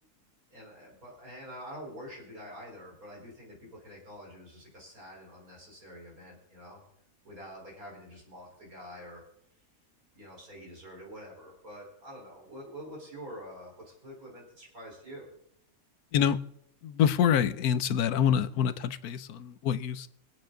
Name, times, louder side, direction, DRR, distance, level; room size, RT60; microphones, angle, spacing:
voice 1, 0.5-6.8 7.2-9.2 10.1-15.3, equal, 65° right, 4.8 m, -46 dB
voice 2, 16.8-20.1, left 8 dB, 80° left, 1.2 m, -26 dB
24.5 x 8.7 x 3.9 m
omnidirectional pair, 1.6 m